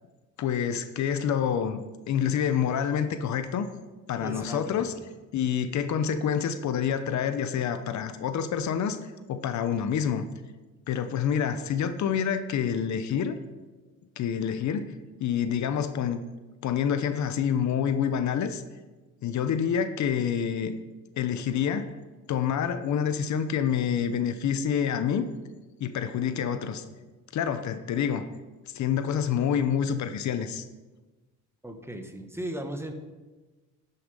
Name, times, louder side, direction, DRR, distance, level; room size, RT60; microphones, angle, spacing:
voice 1, 0.4-1.8 2.1-3.7 4.1-4.9 5.3-9.0 9.3-10.3 10.9-13.3 14.2-14.9 15.2-16.2 16.6-18.6 19.2-20.7 21.2-21.9 22.3-25.3 25.8-26.8 27.3-28.3 28.7-30.6, left 8 dB, 70° left, 10 dB, 0.8 m, -27 dB
voice 2, 4.2-4.9 31.6-32.9, right 1 dB, 10° right, 6 dB, 1.2 m, -36 dB
11.5 x 6.8 x 5.4 m, 1.2 s
cardioid pair, 90°, 30 cm